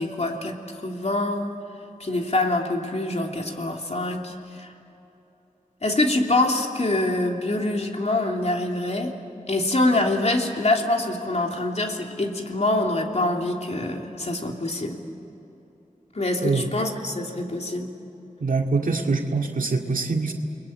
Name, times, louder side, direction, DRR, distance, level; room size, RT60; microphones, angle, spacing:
voice 1, 0.0-1.6 2.0-4.7 5.8-9.2 9.5-15.0 16.1-17.9, left 2 dB, 55° left, 2 dB, 3.0 m, -25 dB
voice 2, 16.4-16.7 18.4-20.3, right 3 dB, 90° right, 2 dB, 2.2 m, -24 dB
29.5 x 21.5 x 8.8 m, 3.0 s
cardioid pair, 45°, 14 cm